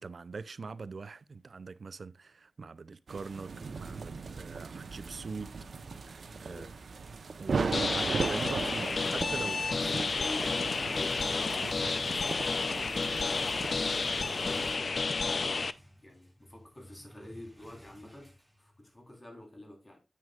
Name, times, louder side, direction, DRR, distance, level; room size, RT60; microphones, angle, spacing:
voice 1, 0.0-5.5 6.0-6.7 7.4-9.7, right 4 dB, 70° right, 0.5 m, -42 dB
sound 1, 3.1-14.8, right 4 dB, 90° right, 0.9 m, -38 dB
voice 2, 6.2-6.8 9.7-15.6 16.0-20.0, left 1 dB, 25° left, 3.8 m, -48 dB
sound 2, 7.7-15.7, left 4 dB, 65° left, 0.5 m, -31 dB
sound 3, 10.6-19.1, equal, 5° left, 2.4 m, -57 dB
9.8 x 8.9 x 2.4 m
wide cardioid pair, 85°, 0 cm